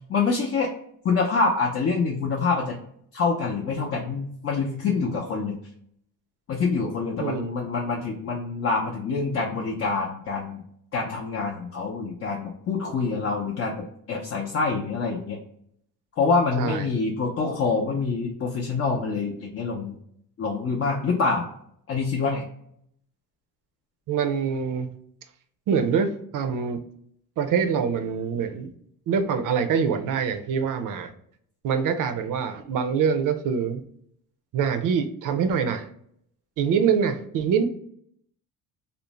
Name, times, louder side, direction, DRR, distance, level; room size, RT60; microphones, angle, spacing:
voice 1, 0.1-0.7 1.0-2.8 3.1-5.6 6.5-10.6 10.9-15.4 16.2-20.0 20.4-21.4 21.9-22.4, left 4 dB, 40° left, -2 dB, 0.5 m, -26 dB
voice 2, 7.2-7.5 16.6-16.9 24.1-24.9 25.7-26.1 26.3-26.8 27.4-28.7 29.1-31.1 31.6-33.8 34.5-35.9 36.6-37.6, right 6 dB, 60° right, 7 dB, 0.5 m, -24 dB
2.5 x 2.0 x 2.9 m, 0.68 s
cardioid pair, 95°, 36 cm